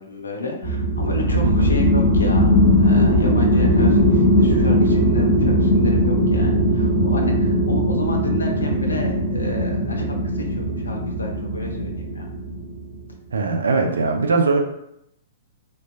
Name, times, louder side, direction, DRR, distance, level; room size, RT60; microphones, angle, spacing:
voice 1, 0.0-12.3, left 2 dB, 75° left, 1 dB, 0.5 m, -31 dB
sound 1, 0.6-12.7, equal, 40° left, 1.2 m, -19 dB
voice 2, 13.3-14.6, right 3 dB, 70° right, 3 dB, 0.4 m, -20 dB
2.9 x 2.1 x 2.4 m, 0.79 s
figure-of-eight pair, 110°, 0 cm